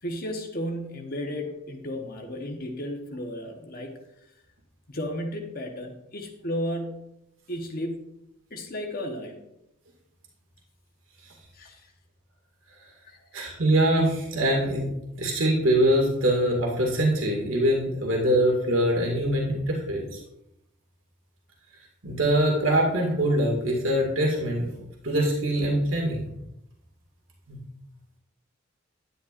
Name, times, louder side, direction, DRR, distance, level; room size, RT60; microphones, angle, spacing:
voice 1, 0.0-3.9 4.9-7.1 7.5-8.1 8.5-9.4 11.5-11.9 13.0-13.2, equal, 50° left, 3 dB, 1.1 m, -34 dB
voice 2, 13.3-14.9 15.2-20.0 22.0-24.7 25.0-26.3 27.5-27.6, right 1 dB, 85° right, -1 dB, 2.1 m, -23 dB
10.0 x 10.0 x 2.5 m, 0.84 s
head